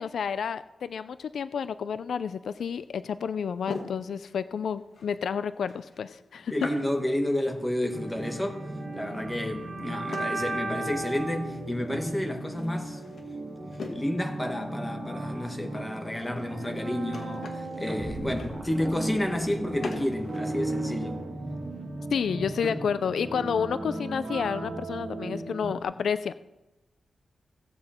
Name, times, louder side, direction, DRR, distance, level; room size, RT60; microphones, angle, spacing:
voice 1, 0.0-6.5 22.1-26.3, left 7 dB, 75° left, 0.3 m, -30 dB
sound 1, 2.3-20.5, left 3 dB, 55° left, 1.6 m, -44 dB
voice 2, 6.5-8.7 8.9-13.0 13.9-21.2 22.6-22.9, left 1 dB, 10° left, 1.2 m, -31 dB
sound 2, 7.9-25.8, right 2 dB, 65° right, 2.3 m, -37 dB
sound 3, 17.6-21.9, right 1 dB, 15° right, 1.2 m, -35 dB
16.5 x 7.7 x 4.3 m
wide cardioid pair, 180°, 0 cm